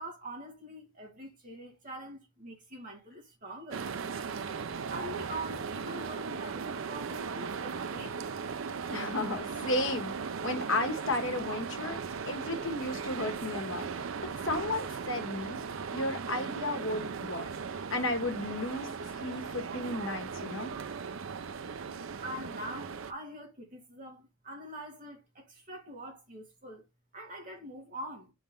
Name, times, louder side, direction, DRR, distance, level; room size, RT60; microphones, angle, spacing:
voice 1, 0.0-3.9 4.9-8.3 22.2-26.8 27.1-28.3, right 1 dB, 40° right, 1.9 m, -44 dB
sound 1, 3.7-23.1, right 5 dB, 70° right, 0.5 m, -38 dB
voice 2, 8.9-12.0 12.2-15.6 15.9-17.5 17.7-20.7, left 2 dB, 70° left, 1.5 m, -34 dB
4.6 x 3.9 x 5.2 m
head